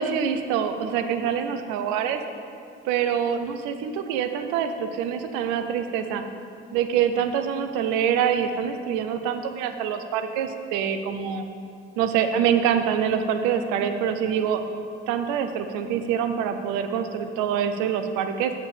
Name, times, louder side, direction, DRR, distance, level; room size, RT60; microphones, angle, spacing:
voice 1, 0.0-2.2 2.8-6.2 6.7-11.4 12.0-14.6 15.1-18.5, right 8 dB, 75° right, 8 dB, 0.7 m, -25 dB
7.8 x 4.4 x 6.7 m, 2.4 s
hypercardioid pair, 60°, 30 cm